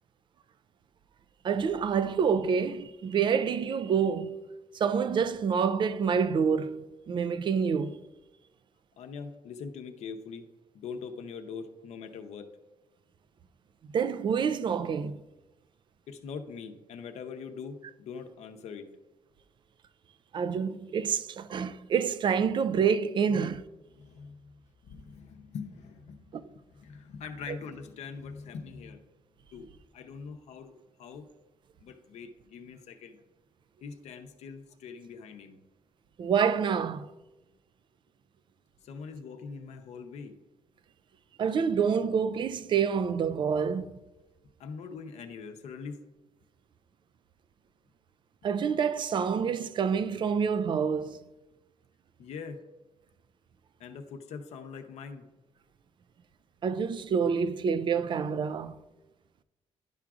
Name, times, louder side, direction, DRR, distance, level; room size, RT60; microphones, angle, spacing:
voice 1, 1.4-4.4 4.7-8.0 13.9-15.2 20.3-23.6 26.3-26.4 36.2-37.1 41.4-44.0 48.4-51.2 56.6-58.7, right 6 dB, 45° right, 0.4 m, -27 dB
voice 2, 9.0-10.4 10.7-12.5 16.1-18.9 23.3-23.5 23.9-24.5 24.8-29.0 29.5-31.3 31.8-33.2 33.8-35.6 38.8-40.4 44.6-46.0 52.2-52.6 53.8-55.3, left 5 dB, 85° left, 0.7 m, -43 dB
10.5 x 5.8 x 2.4 m
cardioid pair, 125°, 11 cm